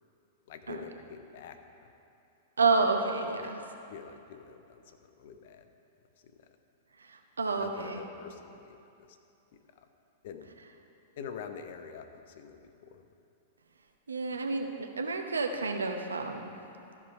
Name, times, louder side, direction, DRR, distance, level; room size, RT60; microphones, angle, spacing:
voice 1, 0.5-1.9 3.4-3.5 3.9-5.7 6.2-6.3 7.6-9.1 10.2-10.5 11.2-13.0, left 7 dB, 55° left, 7 dB, 0.7 m, -46 dB
voice 2, 2.6-3.6 7.0-8.0 14.1-16.5, right 4 dB, 80° right, 4 dB, 0.8 m, -30 dB
13.5 x 4.9 x 5.6 m, 2.7 s
figure-of-eight pair, 100°, 0 cm